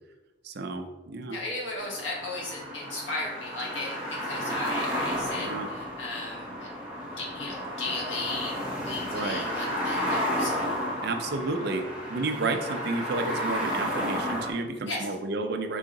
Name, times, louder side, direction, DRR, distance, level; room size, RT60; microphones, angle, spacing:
voice 1, 0.4-1.4 5.4-5.7 9.1-9.4 11.0-15.8, right 3 dB, 55° right, 6 dB, 0.5 m, -31 dB
voice 2, 1.3-6.7 6.9-10.5 14.8-15.1, left 2 dB, 75° left, -3 dB, 1.4 m, -36 dB
sound 1, 1.8-14.5, equal, 5° right, 0.9 m, -32 dB
4.8 x 2.8 x 3.9 m, 1.2 s
head